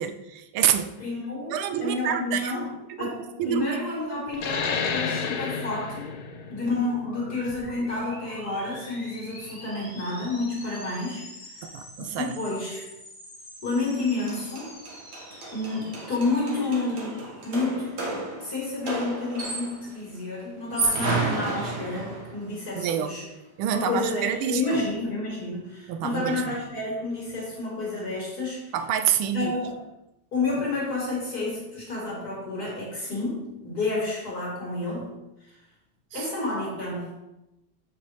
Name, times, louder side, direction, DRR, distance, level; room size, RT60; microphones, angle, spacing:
voice 1, 0.0-0.9 1.5-3.1 3.4-3.8 11.6-12.3 22.7-23.1 23.6-24.8 25.9-26.6 28.7-29.5 36.1-36.3, right 9 dB, 80° right, 9 dB, 1.5 m, -27 dB
voice 2, 1.0-2.7 3.0-6.1 6.5-11.3 12.2-12.8 13.6-14.7 15.5-17.1 17.4-17.9 18.4-23.2 23.7-28.7 29.3-29.8 30.3-35.1 36.1-37.1, left 3 dB, 45° left, -4 dB, 2.2 m, -30 dB
sound 1, 4.3-9.5, left 6 dB, 80° left, 1.6 m, -32 dB
sound 2, 6.7-18.4, left 1 dB, 25° left, 1.5 m, -46 dB
sound 3, 14.0-14.1 14.3-19.9 20.6-22.4, right 3 dB, 55° right, 1.7 m, -31 dB
7.7 x 5.2 x 3.4 m, 0.95 s
omnidirectional pair, 2.3 m